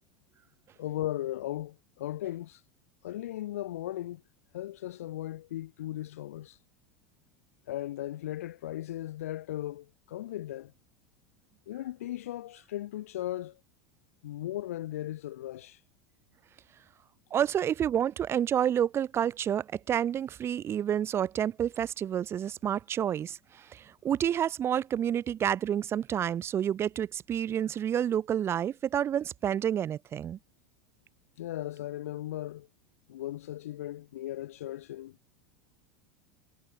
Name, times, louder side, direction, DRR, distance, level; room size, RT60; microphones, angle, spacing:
voice 1, 0.8-2.6 3.0-4.2 4.5-6.6 7.7-10.7 11.7-13.6 14.2-15.8 31.4-32.7 33.1-35.3, left 14 dB, 75° left, 1.1 m, -37 dB
voice 2, 17.3-30.4, right 9 dB, 35° right, 0.9 m, -29 dB
hypercardioid pair, 90°, 8 cm